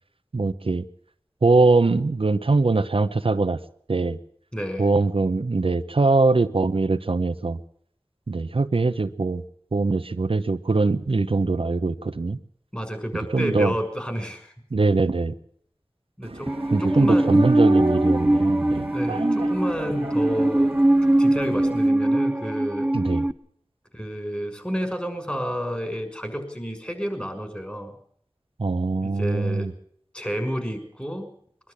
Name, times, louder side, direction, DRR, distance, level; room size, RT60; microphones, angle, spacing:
voice 1, 0.3-0.8 1.4-3.6 3.9-4.2 4.8-7.6 8.3-9.4 9.7-12.4 13.3-13.7 14.7-15.3 16.7-18.9 22.9-23.2 28.6-29.7, right 3 dB, 70° right, 9 dB, 0.8 m, -22 dB
voice 2, 4.5-4.9 12.7-14.5 16.2-17.4 18.9-20.8 21.2-22.9 23.9-27.9 29.0-29.7 30.1-31.3, equal, 15° left, 6 dB, 6.0 m, -30 dB
sound 1, 16.2-21.9, right 2 dB, 90° right, 1.5 m, -33 dB
Musical instrument, 16.5-23.3, right 1 dB, 10° right, 0.8 m, -21 dB
22.5 x 12.0 x 9.7 m, 0.65 s
wide cardioid pair, 50°, 10 cm